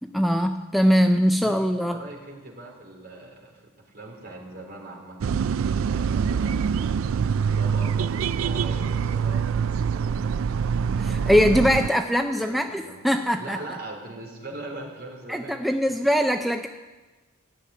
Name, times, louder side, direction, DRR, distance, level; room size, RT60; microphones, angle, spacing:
voice 1, 0.0-2.0 11.0-13.6 15.3-16.7, equal, ahead, 5 dB, 0.4 m, -22 dB
voice 2, 1.9-5.4 5.6-10.5 11.0-11.8 12.4-13.0 13.4-15.6, right 2 dB, 50° right, -1 dB, 3.5 m, -41 dB
sound 1, 5.2-11.9, right 6 dB, 70° right, 0.4 m, -25 dB
15.0 x 7.4 x 9.5 m, 1.2 s
head